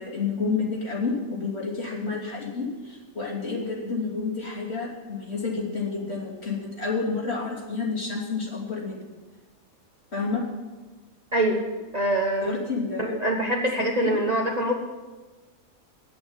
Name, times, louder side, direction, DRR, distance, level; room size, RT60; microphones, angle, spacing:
voice 1, 0.0-9.2 10.1-10.4 12.4-13.2 14.0-14.2, left 4 dB, 45° left, -4 dB, 3.2 m, -30 dB
voice 2, 11.3-11.6 11.9-12.6 13.0-14.7, right 1 dB, 30° right, 1 dB, 1.0 m, -24 dB
9.5 x 8.4 x 9.7 m, 1.2 s
omnidirectional pair, 1.5 m